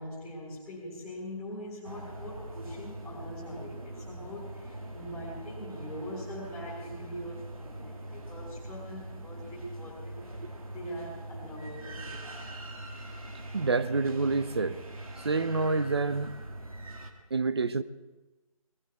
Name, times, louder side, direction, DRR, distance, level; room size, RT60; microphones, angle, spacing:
voice 1, 0.0-12.4, equal, ahead, -9 dB, 1.8 m, -42 dB
sound 1, 1.8-17.1, right 1 dB, 70° right, 2.4 m, -42 dB
voice 2, 13.5-14.8 15.2-16.4 17.3-17.8, right 3 dB, 45° right, 13 dB, 0.7 m, -27 dB
20.0 x 15.5 x 4.6 m, 1.2 s
hypercardioid pair, 175°, 19 cm